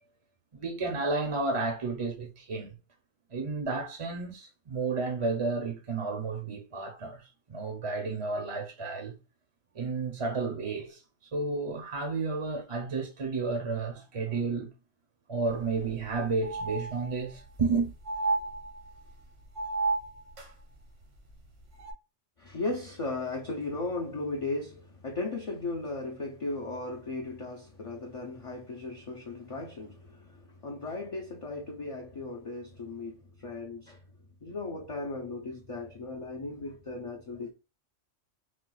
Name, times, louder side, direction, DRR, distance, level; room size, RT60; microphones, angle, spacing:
voice 1, 0.5-2.7 3.3-9.1 9.7-11.0 11.3-14.7 15.3-17.9, right 3 dB, 35° right, 0.6 m, -32 dB
sound 1, 15.5-15.6 15.9-16.0 16.4-17.4 18.1-19.1 19.6-20.5 21.8-21.9, right 3 dB, 75° right, 1.3 m, -32 dB
voice 2, 22.4-34.0 34.4-37.5, left 3 dB, 40° left, 0.5 m, -36 dB
4.2 x 2.3 x 2.2 m
omnidirectional pair, 1.3 m